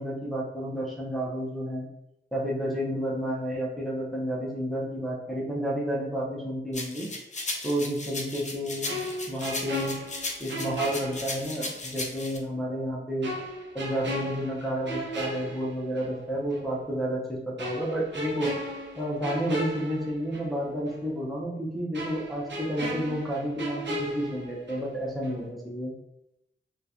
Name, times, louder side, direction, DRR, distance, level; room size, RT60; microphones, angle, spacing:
voice 1, 0.0-1.9 2.3-7.1 7.6-10.0 10.4-13.3 13.7-18.5 19.0-25.9, equal, ahead, -5 dB, 0.7 m, -31 dB
sound 1, 6.7-12.4, left 2 dB, 35° left, 0.5 m, -36 dB
sound 2, 8.9-11.8 12.1-12.3 13.2-16.2 16.5-16.7 17.6-20.6 20.9-21.0 21.9-25.0 25.2-25.5, equal, 60° right, 0.8 m, -36 dB
3.7 x 2.3 x 2.8 m, 0.86 s
wide cardioid pair, 120°, 20 cm